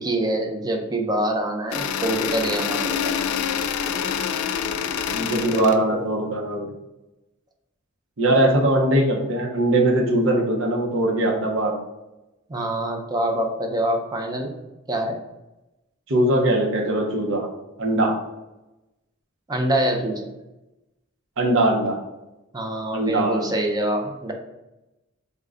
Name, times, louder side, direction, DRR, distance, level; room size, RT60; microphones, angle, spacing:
voice 1, 0.0-3.2 5.5-6.0 12.5-14.6 14.9-15.2 19.5-20.3 22.5-24.3, right 1 dB, 20° right, 2 dB, 0.5 m, -25 dB
sound 1, 1.7-5.8, left 7 dB, 80° left, 0.3 m, -26 dB
voice 2, 5.1-6.7 8.2-11.8 16.1-17.5 17.8-18.2 21.4-22.0 22.9-23.4, right 1 dB, 65° right, 1 dB, 0.7 m, -21 dB
3.7 x 2.1 x 3.6 m, 0.99 s
head